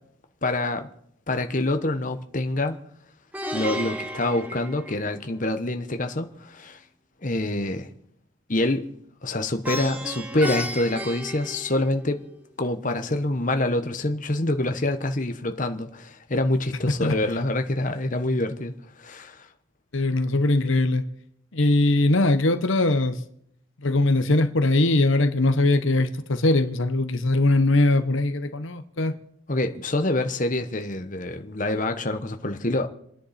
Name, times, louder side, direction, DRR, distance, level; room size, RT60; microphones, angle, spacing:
voice 1, 0.4-0.9 1.3-2.8 3.5-6.8 7.2-7.9 8.5-8.9 9.2-12.2 12.6-19.5 29.5-32.9, left 2 dB, 40° left, 1.1 m, -26 dB
Plucked string instrument, 3.3-5.5 9.6-12.2, equal, 5° right, 1.3 m, -33 dB
voice 2, 19.9-21.0 21.5-23.2 23.8-29.1, left 2 dB, 70° left, 1.0 m, -21 dB
29.5 x 10.0 x 4.3 m
head